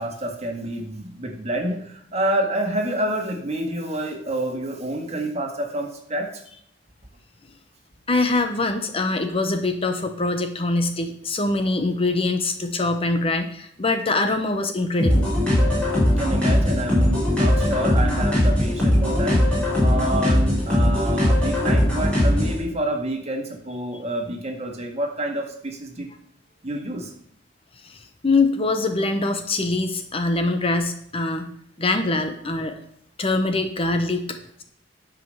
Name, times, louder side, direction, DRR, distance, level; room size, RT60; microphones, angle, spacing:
voice 1, 0.0-6.3 16.1-19.5 19.8-26.1 26.6-27.1, right 1 dB, 35° right, 2 dB, 1.7 m, -28 dB
voice 2, 8.1-15.2 27.8-31.5 31.8-32.8 33.2-34.6, left 2 dB, 30° left, 7 dB, 0.8 m, -23 dB
sound 1, 15.0-22.6, left 1 dB, 5° left, 5.2 m, -20 dB
11.0 x 5.1 x 6.6 m, 0.67 s
head